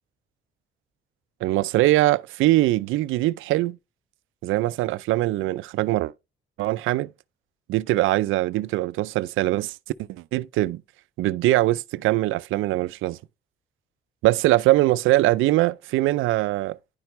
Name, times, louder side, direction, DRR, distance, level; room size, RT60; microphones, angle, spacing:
voice 1, 1.4-3.8 4.4-6.1 6.6-7.1 7.7-9.7 10.1-10.8 11.2-13.2 14.2-16.8, right 17 dB, 90° right, 0.4 m, -22 dB
10.5 x 5.9 x 3.1 m
cardioid pair, 90°, 20 cm